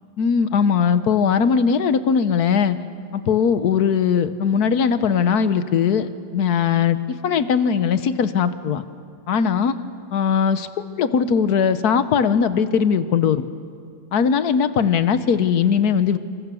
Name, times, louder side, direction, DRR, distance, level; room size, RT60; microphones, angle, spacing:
voice 1, 0.2-2.8 3.1-7.0 7.2-8.8 9.3-9.7 10.1-10.7 11.0-13.4 14.1-16.2, left 7 dB, 60° left, 12 dB, 1.3 m, -19 dB
29.0 x 24.5 x 7.0 m, 2.3 s
omnidirectional pair, 2.1 m